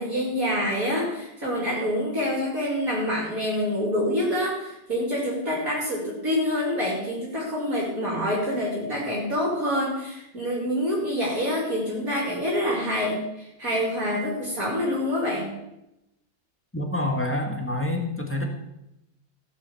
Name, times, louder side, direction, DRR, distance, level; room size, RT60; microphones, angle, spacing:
voice 1, 0.0-15.5, equal, 50° right, -4 dB, 3.2 m, -26 dB
voice 2, 16.7-18.4, left 1 dB, 5° left, 2 dB, 1.7 m, -27 dB
16.0 x 6.9 x 7.0 m, 0.89 s
omnidirectional pair, 2.0 m